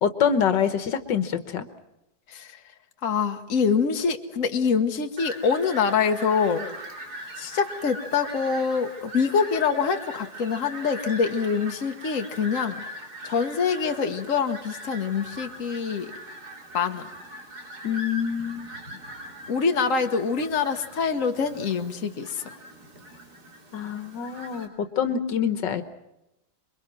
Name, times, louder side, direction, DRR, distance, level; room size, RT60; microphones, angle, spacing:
voice 1, 0.0-1.6 17.8-18.7 23.7-25.8, left 7 dB, 80° left, 10 dB, 1.9 m, -25 dB
voice 2, 2.3-2.6 3.0-6.7 7.4-12.8 13.2-16.1 16.7-17.1 19.5-22.4, left 5 dB, 50° left, 5 dB, 1.7 m, -25 dB
Fowl, 5.2-24.7, equal, 60° right, 3.8 m, -41 dB
27.5 x 23.0 x 6.1 m, 0.89 s
omnidirectional pair, 1.9 m